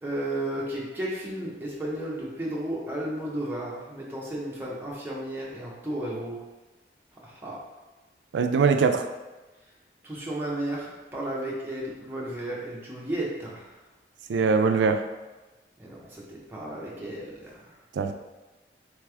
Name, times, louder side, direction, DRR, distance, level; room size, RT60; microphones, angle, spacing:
voice 1, 0.0-6.4 7.2-7.6 10.0-13.7 15.8-17.7, right 1 dB, 10° right, -5 dB, 0.7 m, -33 dB
voice 2, 8.3-9.1 14.3-15.0 18.0-18.1, right 5 dB, 85° right, 7 dB, 0.3 m, -22 dB
3.3 x 3.3 x 3.4 m, 1.2 s
head